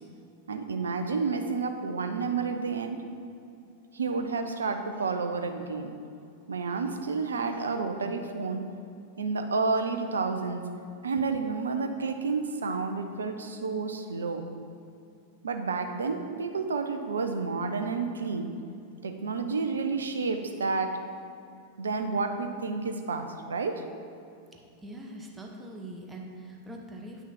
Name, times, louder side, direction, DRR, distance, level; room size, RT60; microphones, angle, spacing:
voice 1, 0.5-3.0 3.9-5.9 6.5-8.6 9.2-10.6 11.0-14.4 15.4-18.5 19.0-21.0 21.8-23.7, right 4 dB, 70° right, 6 dB, 0.6 m, -30 dB
voice 2, 24.5-27.2, right 1 dB, 10° right, 0 dB, 1.1 m, -43 dB
9.0 x 6.1 x 4.3 m, 2.5 s
figure-of-eight pair, 90°, 0 cm